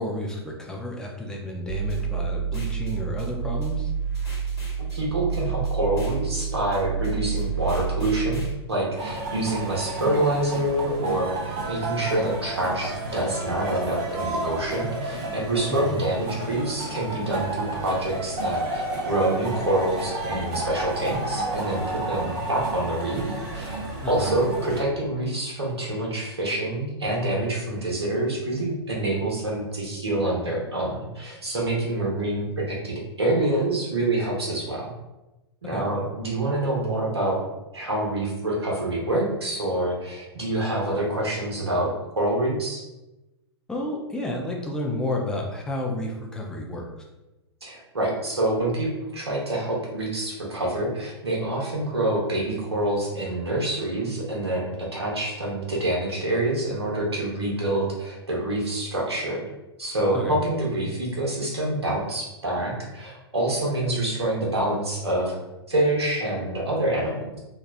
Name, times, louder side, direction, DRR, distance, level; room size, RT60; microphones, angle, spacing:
voice 1, 0.0-3.9 15.7-16.0 24.0-24.3 35.7-35.8 43.7-46.8 60.1-60.4, left 1 dB, 5° left, -1 dB, 0.4 m, -31 dB
sound 1, 1.7-8.5, right 6 dB, 75° left, 1.3 m, -29 dB
voice 2, 4.9-23.2 23.5-23.8 24.0-34.9 35.6-37.4 37.7-42.8 47.6-59.4 59.8-65.4 65.7-67.4, right 1 dB, 75° right, -3 dB, 0.9 m, -26 dB
sound 2, 9.0-24.8, right 2 dB, 35° right, 0.7 m, -31 dB
3.2 x 2.3 x 2.3 m, 1.0 s
figure-of-eight pair, 105°, 14 cm